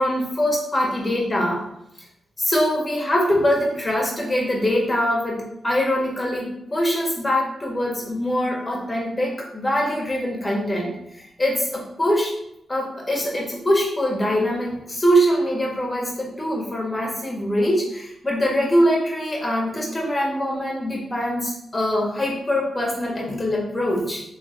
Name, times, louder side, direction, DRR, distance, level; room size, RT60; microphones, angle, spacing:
voice 1, 0.0-1.6 2.4-12.3 12.7-24.2, equal, 25° left, -2 dB, 1.4 m, -23 dB
3.5 x 3.3 x 3.3 m, 0.80 s
cardioid pair, 70°, 0 cm